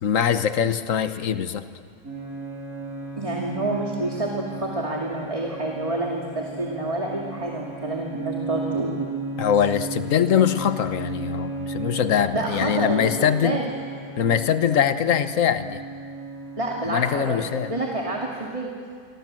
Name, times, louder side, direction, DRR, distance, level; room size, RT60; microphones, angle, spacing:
voice 1, 0.0-1.6 9.4-13.6 14.2-15.8 16.9-17.7, left 8 dB, 60° left, 11 dB, 1.4 m, -22 dB
sound 1, 2.0-18.3, right 3 dB, 70° right, 6.7 m, -35 dB
voice 2, 3.2-9.1 12.3-13.1 13.4-13.7 16.6-18.7, right 2 dB, 20° right, -1 dB, 2.4 m, -28 dB
27.5 x 24.5 x 7.6 m, 2.1 s
omnidirectional pair, 1.6 m